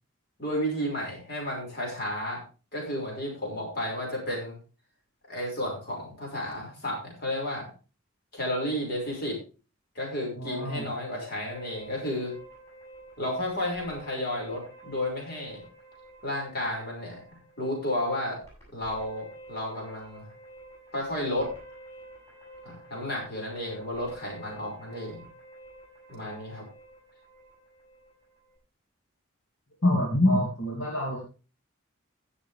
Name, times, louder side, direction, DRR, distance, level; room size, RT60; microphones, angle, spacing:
voice 1, 0.4-2.4 2.7-4.5 5.3-7.7 8.3-9.4 10.0-12.4 13.2-15.6 16.2-17.2 17.6-18.4 18.7-20.3 20.9-21.5 22.6-25.3 26.1-26.6, left 1 dB, 50° left, -1 dB, 5.6 m, -32 dB
voice 2, 10.4-10.9 29.8-31.2, left 1 dB, 75° left, -2 dB, 2.8 m, -25 dB
sound 1, 11.5-28.6, right 1 dB, 15° left, 7.6 m, -50 dB
16.0 x 7.3 x 3.4 m, 0.33 s
head